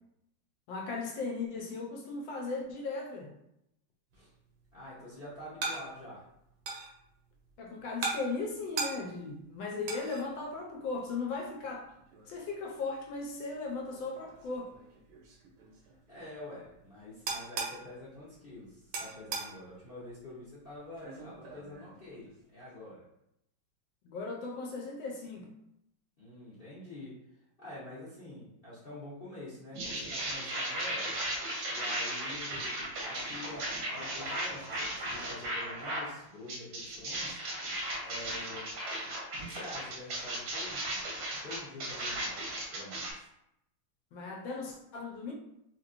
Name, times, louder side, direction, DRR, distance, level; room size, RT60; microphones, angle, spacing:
voice 1, 0.7-3.3 7.6-11.9 12.3-14.7 24.0-25.5 44.1-45.3, left 3 dB, 75° left, 0 dB, 1.3 m, -37 dB
sound 1, 4.1-22.7, right 4 dB, 85° right, 1.7 m, -43 dB
voice 2, 4.7-6.2 16.1-23.0 26.2-27.1 27.6-31.2 31.7-37.4 38.0-38.7 39.4-43.3, left 1 dB, 45° left, -8 dB, 0.7 m, -47 dB
sound 2, 29.7-36.1 36.5-43.1, right 1 dB, 60° right, 1.0 m, -36 dB
4.6 x 2.9 x 2.5 m, 0.79 s
omnidirectional pair, 2.4 m